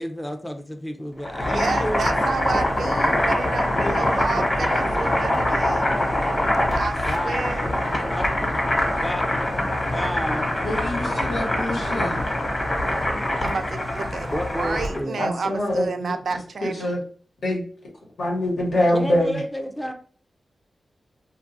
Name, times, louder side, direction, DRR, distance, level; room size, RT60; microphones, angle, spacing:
voice 1, 0.0-2.2 3.8-4.9 7.1-7.7 8.1-8.3 9.0-10.5 14.3-15.2 18.9-19.9, equal, 10° left, 0.4 m, -31 dB
Boiling, 1.2-15.0, left 1 dB, 35° left, 1.0 m, -24 dB
voice 2, 1.5-5.9 6.8-7.7 13.4-17.0, right 4 dB, 70° right, 0.3 m, -30 dB
voice 3, 10.6-12.3 15.2-17.0 17.4-17.6 18.2-19.4, left 1 dB, 90° left, 1.2 m, -25 dB
3.1 x 2.3 x 2.6 m
wide cardioid pair, 120°, 0 cm